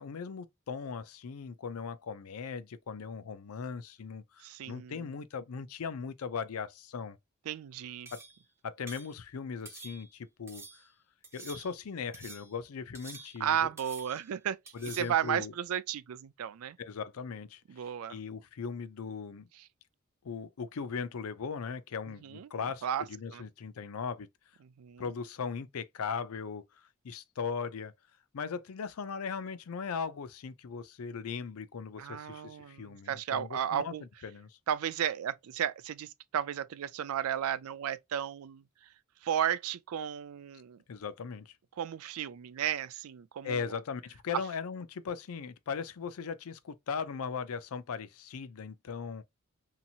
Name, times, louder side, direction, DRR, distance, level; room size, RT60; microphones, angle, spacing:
voice 1, 0.0-7.2 8.1-8.2 8.6-10.9 11.3-13.7 14.7-15.5 16.8-17.6 18.1-19.5 20.2-24.3 25.0-26.6 27.0-27.9 28.3-33.9 34.2-34.6 40.9-41.5 43.4-49.2, left 5 dB, 85° left, 0.5 m, -38 dB
voice 2, 4.4-5.1 7.5-8.1 13.4-14.6 14.9-16.8 17.7-18.2 22.1-22.5 22.8-23.5 24.8-25.0 32.0-34.0 34.7-38.6 39.2-40.8 41.8-43.8 44.3-44.4, right 9 dB, 80° right, 0.4 m, -34 dB
sound 1, 8.1-8.4 8.9-9.1 9.7-10.2 10.5-10.9 11.2-11.8 12.1-12.6 12.9-13.5 13.8-14.3 14.7-15.2, right 3 dB, 10° right, 0.6 m, -49 dB
2.8 x 2.7 x 2.4 m
head